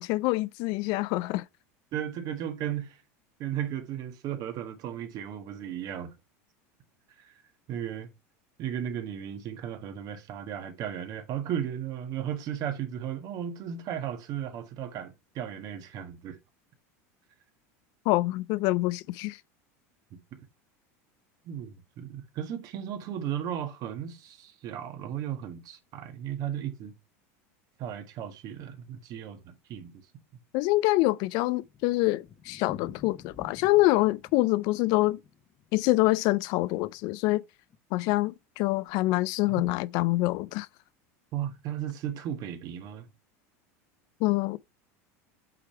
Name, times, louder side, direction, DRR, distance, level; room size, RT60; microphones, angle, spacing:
voice 1, 0.0-1.4 18.1-19.4 30.5-35.2 35.7-37.4 37.9-40.7 44.2-44.6, left 19 dB, 60° left, 0.4 m, -26 dB
voice 2, 1.9-3.0 3.4-6.1 7.2-7.3 7.7-8.1 8.6-16.4 20.1-20.5 21.4-26.9 27.8-29.9 41.3-43.1, right 10 dB, 50° right, 1.4 m, -35 dB
Thunder, 30.8-37.1 37.3-37.4 37.7-37.8 38.0-38.1 38.7-39.0, left 7 dB, 35° left, 1.0 m, -49 dB
8.4 x 3.4 x 4.5 m
supercardioid pair, 105°, 8 cm